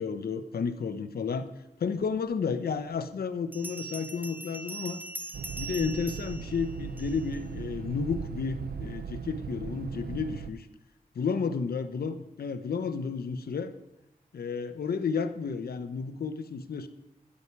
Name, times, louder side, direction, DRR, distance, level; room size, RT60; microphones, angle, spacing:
voice 1, 0.0-1.5 1.8-5.0 5.6-10.7 11.2-13.7 14.3-16.9, left 5 dB, 90° left, 10 dB, 1.0 m, -32 dB
Bell, 2.3-2.4 3.5-7.4, right 2 dB, 10° right, 1.1 m, -41 dB
sound 1, 5.3-10.5, right 7 dB, 90° right, 0.6 m, -38 dB
12.0 x 11.0 x 4.7 m, 0.89 s
cardioid pair, 60°, 15 cm